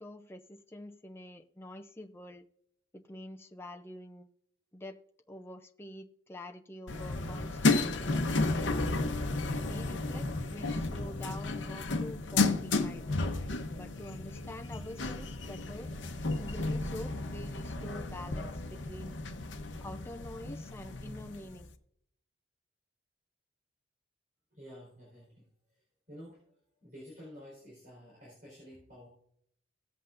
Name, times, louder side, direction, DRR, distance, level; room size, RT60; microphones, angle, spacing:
voice 1, 0.0-2.4 2.9-4.3 4.7-5.0 5.3-8.8 9.3-13.1 13.7-15.9 16.4-19.2 19.8-21.7, left 1 dB, 15° left, 4 dB, 0.5 m, -46 dB
sound 1, 6.9-21.7, left 3 dB, 65° left, 0.8 m, -33 dB
voice 2, 24.5-25.8 26.1-26.4 26.8-29.1, equal, 45° right, -4 dB, 4.2 m, -51 dB
17.0 x 7.9 x 2.5 m, 0.70 s
head